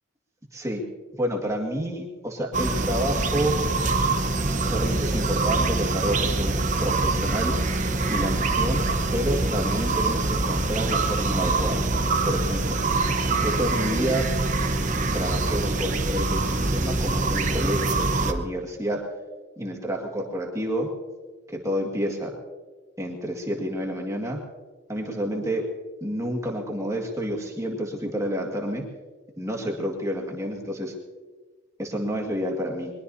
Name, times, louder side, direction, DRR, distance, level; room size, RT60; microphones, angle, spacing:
voice 1, 0.5-0.8 1.2-3.6 4.7-6.5 6.8-7.6 8.1-8.8 9.1-11.9 12.2-12.7 13.4-14.3 15.1-19.0 19.6-20.9 21.5-22.3 23.0-24.4 24.9-25.7 26.0-28.8 29.4-30.9 31.8-32.9, equal, 15° right, 0 dB, 1.9 m, -29 dB
sound 1, 2.5-18.3, right 3 dB, 40° right, 1.0 m, -24 dB
22.5 x 22.0 x 2.8 m, 1.3 s
head